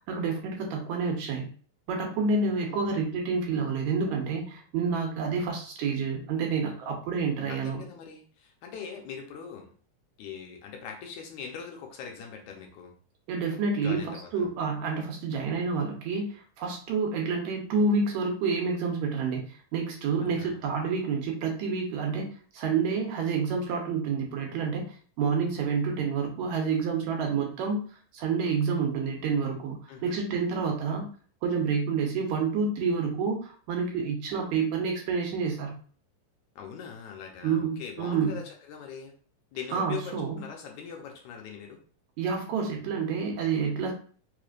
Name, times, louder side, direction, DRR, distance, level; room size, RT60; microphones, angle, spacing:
voice 1, 0.1-1.5 1.9-7.8 13.3-14.1 14.3-27.8 28.1-31.1 31.4-35.7 37.4-38.3 39.7-40.4 42.2-43.9, right 5 dB, 75° right, 1 dB, 2.0 m, -28 dB
voice 2, 2.4-3.0 7.5-9.7 10.2-12.9 13.8-14.5 20.2-20.7 29.9-30.2 36.6-39.1 39.5-41.8, left 7 dB, 75° left, 2 dB, 2.1 m, -41 dB
4.9 x 3.2 x 2.4 m, 0.43 s
omnidirectional pair, 3.5 m